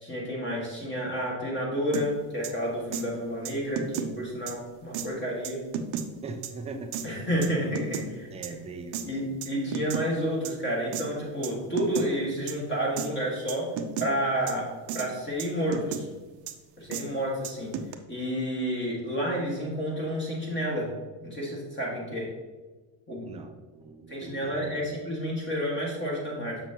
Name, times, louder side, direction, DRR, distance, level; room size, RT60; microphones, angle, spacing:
voice 1, 0.0-5.6 7.0-8.3 9.1-13.7 14.0-16.1 16.8-17.7 18.1-20.9 21.2-22.3 23.1-23.4 24.1-26.6, equal, 25° left, -4 dB, 1.9 m, -30 dB
sound 1, 1.9-2.1 2.4-2.5 2.9-3.0 3.4-4.1 4.5-4.6 4.9-5.1 5.4-6.1 6.4-6.5 6.9-7.1 7.4-8.1 8.4-8.5 8.9-9.0 9.4-10.1 10.4-10.5 10.9-11.1 11.4-11.5 11.8-12.1 12.5-12.6 13.0-13.1 13.5-14.1 14.5-14.6 14.9-15.1 15.4-16.0 16.5-16.6 16.9-17.0 17.4-17.9, right 8 dB, 55° right, 0.7 m, -33 dB
voice 2, 6.2-6.9 8.3-9.1 23.3-24.8, right 4 dB, 15° right, 5 dB, 0.3 m, -40 dB
6.7 x 6.0 x 2.9 m, 1.3 s
cardioid pair, 130°, 48 cm